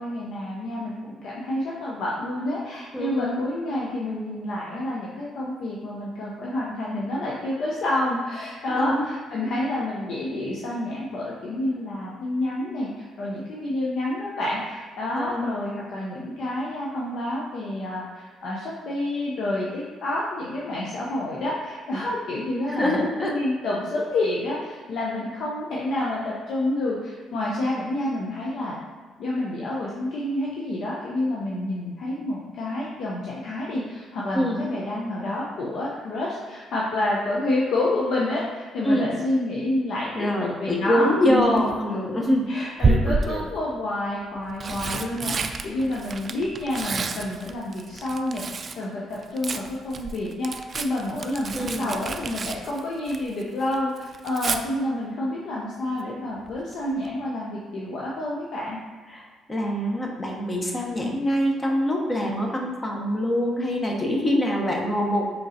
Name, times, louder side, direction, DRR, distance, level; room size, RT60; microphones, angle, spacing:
voice 1, 0.0-28.8 29.2-41.6 41.9-42.0 42.5-45.3 45.6-48.4 48.8-58.8, left 1 dB, 65° left, -5 dB, 0.7 m, -29 dB
voice 2, 2.9-3.4 8.7-9.0 15.2-15.5 22.7-23.3 34.3-34.7 38.8-39.1 40.1-42.5 51.5-52.0 59.1-65.3, equal, 25° left, 0 dB, 0.9 m, -24 dB
Tearing, 41.3-41.8 42.8-43.5 44.3-48.8 49.1-53.4 53.7-54.6 56.5-56.7 57.0-57.1, right 3 dB, 45° right, 0.3 m, -29 dB
4.5 x 3.7 x 2.7 m, 1.5 s
supercardioid pair, 70°, 0 cm